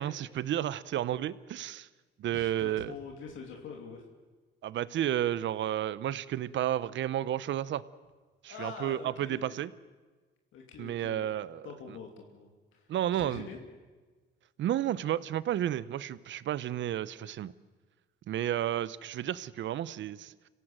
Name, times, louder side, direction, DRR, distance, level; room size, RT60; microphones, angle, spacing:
voice 1, 0.0-1.9 2.2-2.9 4.6-7.8 8.4-9.7 10.8-12.0 12.9-13.5 14.6-17.5 18.3-20.5, right 11 dB, 70° right, 18 dB, 0.8 m, -32 dB
voice 2, 2.3-4.0 8.5-9.6 10.5-11.3 11.6-12.9 13.2-13.6, left 5 dB, 80° left, 2 dB, 3.0 m, -45 dB
27.0 x 17.0 x 7.6 m, 1.4 s
cardioid pair, 90°, 20 cm